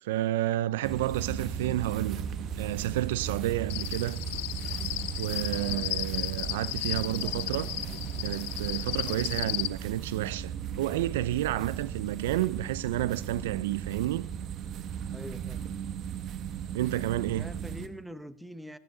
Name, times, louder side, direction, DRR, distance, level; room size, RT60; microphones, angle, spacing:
voice 1, 0.0-2.2 2.6-4.2 5.2-7.7 8.2-14.2 16.7-17.5, right 14 dB, 80° right, 0.4 m, -30 dB
sound 1, 0.8-17.9, right 8 dB, 50° right, 1.0 m, -36 dB
Cricket, 3.7-9.7, left 19 dB, 75° left, 0.5 m, -34 dB
voice 2, 5.6-5.9 7.2-7.4 9.0-9.3 15.1-15.6 17.3-18.8, equal, 5° right, 0.8 m, -44 dB
14.0 x 13.0 x 3.9 m
hypercardioid pair, 90°, 0 cm